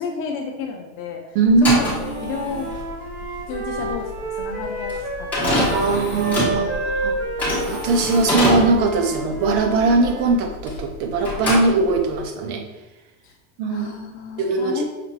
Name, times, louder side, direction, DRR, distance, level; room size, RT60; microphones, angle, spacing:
voice 1, 0.0-2.7 3.5-5.6 5.9-6.1 6.4-6.8 13.2-13.4 13.7-14.8, left 5 dB, 30° left, 1 dB, 0.7 m, -32 dB
voice 2, 1.3-1.8 5.5-7.2 7.7-12.6 13.6-13.9 14.4-14.8, right 3 dB, 40° right, 6 dB, 0.5 m, -20 dB
sound 1, 1.5-10.9 11.2-12.2, left 1 dB, 5° left, 1.2 m, -25 dB
Wind instrument woodwind instrument, 1.9-5.9 6.1-10.4, right 2 dB, 70° right, 1.3 m, -30 dB
5.8 x 2.5 x 3.2 m, 1.0 s
supercardioid pair, 150°, 43 cm